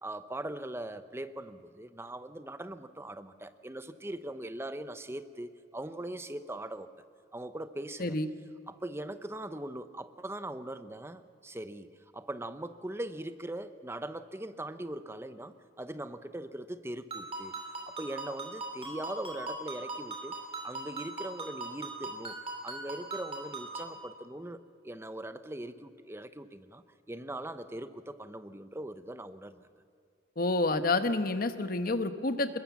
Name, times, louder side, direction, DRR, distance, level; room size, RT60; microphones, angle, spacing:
voice 1, 0.0-6.9 7.3-8.2 8.7-11.9 12.1-17.5 17.9-20.4 20.6-22.4 22.6-29.7, right 1 dB, 15° right, 11 dB, 0.8 m, -41 dB
Ringtone, 17.1-24.0, right 2 dB, 30° right, 3.4 m, -40 dB
voice 2, 30.4-32.6, left 2 dB, 50° left, 9 dB, 1.1 m, -29 dB
23.0 x 21.0 x 7.3 m, 2.2 s
head